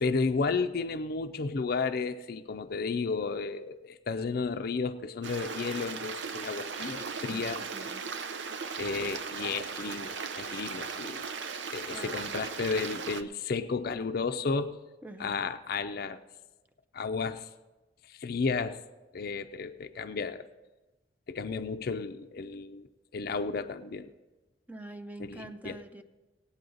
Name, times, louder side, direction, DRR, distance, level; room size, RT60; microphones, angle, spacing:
voice 1, 0.0-7.6 8.8-11.3 11.7-14.8 15.2-16.2 16.9-17.5 18.1-18.8 19.1-20.5 21.3-22.9 23.1-24.1 25.2-25.8, left 4 dB, 55° left, 8 dB, 0.5 m, -33 dB
Stream, 5.2-13.2, right 5 dB, 85° right, 0.6 m, -37 dB
voice 2, 7.7-8.1 11.9-12.4 15.0-15.4 24.7-26.0, right 1 dB, 10° right, 7 dB, 0.5 m, -45 dB
18.5 x 8.6 x 3.9 m, 1.1 s
head